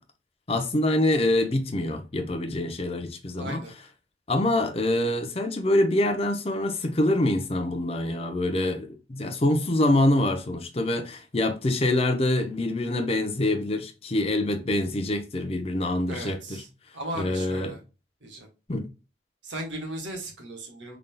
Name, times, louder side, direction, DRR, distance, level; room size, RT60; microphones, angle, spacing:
voice 1, 0.5-3.6 4.3-16.6 17.1-17.8 18.7-18.9, left 1 dB, 35° left, 0.6 m, -25 dB
voice 2, 3.4-3.7 16.1-16.7 16.9-17.8 18.2-18.5 19.4-21.0, right 1 dB, 90° right, 1.4 m, -36 dB
3.8 x 3.5 x 2.2 m
head